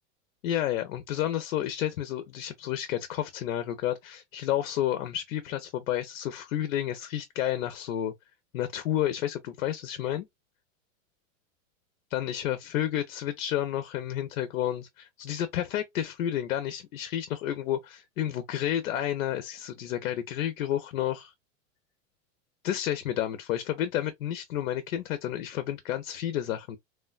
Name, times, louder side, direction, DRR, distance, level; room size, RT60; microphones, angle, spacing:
voice 1, 0.4-8.1 8.5-10.3 12.1-21.3 22.6-26.8, left 11 dB, 85° left, 0.6 m, -31 dB
3.1 x 2.2 x 2.3 m
supercardioid pair, 125°, 40 cm